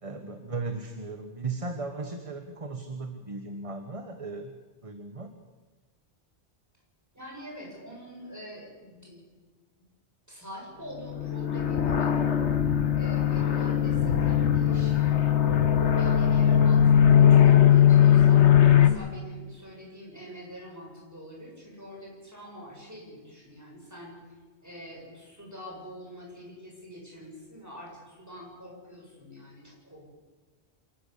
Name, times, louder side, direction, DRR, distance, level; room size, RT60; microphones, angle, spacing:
voice 1, 0.0-5.3, right 3 dB, 30° right, 6 dB, 1.3 m, -36 dB
voice 2, 7.1-9.2 10.3-12.2 13.0-15.2 16.0-18.5 18.8-24.2 24.6-30.1, equal, 15° right, -2 dB, 7.6 m, -45 dB
sound 1, 11.1-18.9, left 9 dB, 85° left, 1.5 m, -20 dB
26.5 x 13.0 x 8.5 m, 1.3 s
omnidirectional pair, 1.1 m